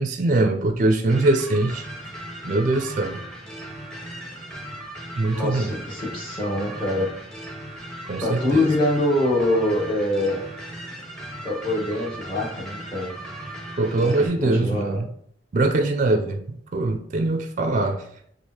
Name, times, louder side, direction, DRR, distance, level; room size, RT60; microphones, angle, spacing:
voice 1, 0.0-1.8 2.4-3.2 5.2-5.7 8.1-8.7 13.8-15.1 15.5-16.4 16.7-18.0, right 2 dB, 45° right, 5 dB, 0.4 m, -22 dB
sound 1, 1.1-14.3, right 1 dB, 5° left, 0.7 m, -37 dB
voice 2, 5.3-7.1 8.2-10.4 11.4-13.1 14.0-14.1 14.4-15.0, left 1 dB, 30° left, -3 dB, 1.3 m, -24 dB
6.3 x 2.5 x 2.8 m, 0.66 s
head